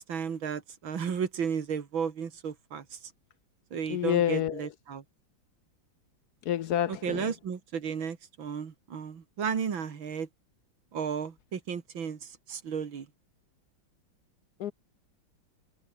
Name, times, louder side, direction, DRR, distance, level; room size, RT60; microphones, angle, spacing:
voice 1, 0.0-2.8 3.7-5.0 6.9-10.3 10.9-12.2 12.5-13.1, right 7 dB, 85° right, 2.8 m, -33 dB
voice 2, 3.9-4.7 6.5-7.3 14.6-14.7, left 11 dB, 65° left, 1.1 m, -28 dB
omnidirectional pair, 2.1 m